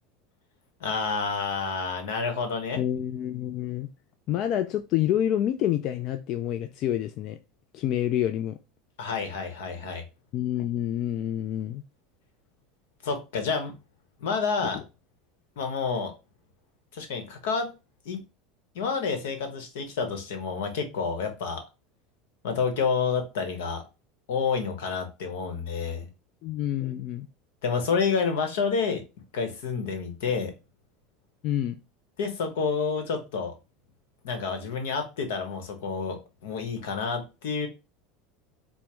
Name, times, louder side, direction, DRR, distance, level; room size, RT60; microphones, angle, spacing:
voice 1, 0.8-2.8 9.0-10.0 13.0-13.7 14.2-14.8 15.6-16.1 16.9-17.7 18.0-18.2 18.7-21.6 22.4-23.8 24.3-26.1 27.6-29.0 29.3-30.5 32.2-33.5 34.2-37.7, left 5 dB, 85° left, 1.0 m, -29 dB
voice 2, 2.7-3.9 4.3-7.4 7.7-8.6 10.3-11.8 14.7-14.8 26.4-27.3 31.4-31.8, left 11 dB, 55° left, 0.3 m, -28 dB
4.5 x 2.0 x 3.4 m
supercardioid pair, 110°, 0 cm